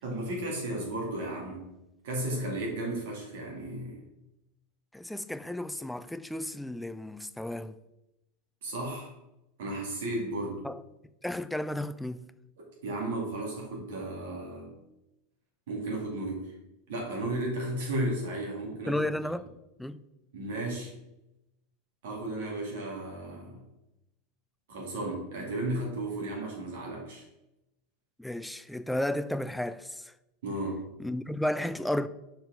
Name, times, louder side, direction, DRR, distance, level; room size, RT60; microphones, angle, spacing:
voice 1, 0.0-1.7 2.0-4.0 8.6-9.1 9.6-10.6 12.8-14.7 15.7-16.5 16.9-19.1 20.3-20.9 22.0-23.6 24.7-27.2 30.4-30.8, right 1 dB, 70° right, 2.6 m, -34 dB
voice 2, 4.9-7.8 10.6-10.8 11.2-12.2 18.9-19.5 19.8-20.0 28.2-30.1 31.0-32.1, left 1 dB, 5° left, 0.4 m, -33 dB
5.5 x 4.7 x 5.2 m
hypercardioid pair, 95°, 0 cm